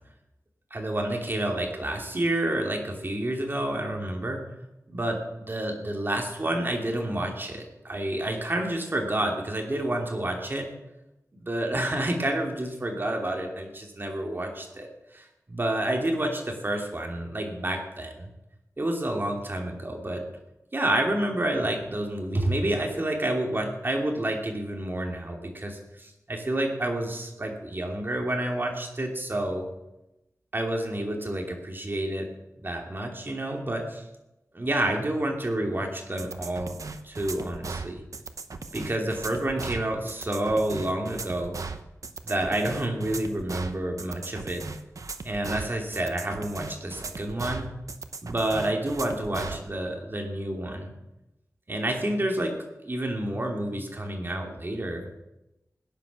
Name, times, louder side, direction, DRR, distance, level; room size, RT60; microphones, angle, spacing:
voice 1, 0.7-4.4 4.9-10.7 11.3-18.3 18.8-20.2 20.7-29.7 30.5-32.3 32.6-34.0 34.5-36.8 37.0-38.0 38.7-41.5 42.2-44.6 45.2-47.7 48.2-50.9 51.7-52.5 52.8-55.2, right 1 dB, 35° right, 2 dB, 2.8 m, -29 dB
sound 1, 36.2-49.6, right 4 dB, 70° right, 1.0 m, -37 dB
17.0 x 10.0 x 6.3 m, 0.94 s
wide cardioid pair, 85°, 6 cm